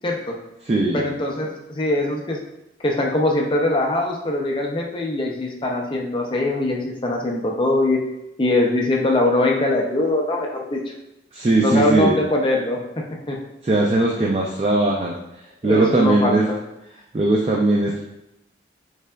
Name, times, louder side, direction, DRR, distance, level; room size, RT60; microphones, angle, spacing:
voice 1, 0.0-0.3 0.9-2.4 2.8-8.0 8.4-10.8 11.6-13.4 15.6-16.6, left 2 dB, 25° left, 0 dB, 0.4 m, -22 dB
voice 2, 0.7-1.0 11.3-12.1 13.6-15.1 15.6-16.4 17.1-18.0, right 2 dB, 35° right, -2 dB, 0.3 m, -19 dB
3.8 x 3.3 x 2.2 m, 0.90 s
head